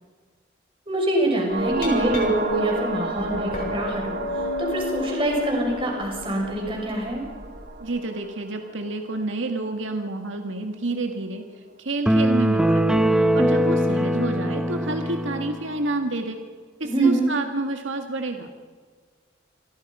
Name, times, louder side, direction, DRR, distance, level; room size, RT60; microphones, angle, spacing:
voice 1, 0.9-4.2 4.6-7.2 16.8-17.3, right 1 dB, 25° right, 0 dB, 6.6 m, -24 dB
sound 1, 1.4-9.9 10.2-10.3, right 2 dB, 55° right, 2.3 m, -32 dB
Glass, 1.5-7.7, left 3 dB, 50° left, 7.0 m, -34 dB
voice 2, 7.8-11.4 11.8-12.9 13.3-16.4 16.8-18.5, right 2 dB, 80° right, 5 dB, 1.9 m, -29 dB
sound 2, 12.1-15.6, right 1 dB, 5° right, 1.1 m, -21 dB
28.5 x 23.5 x 5.6 m, 1.5 s
head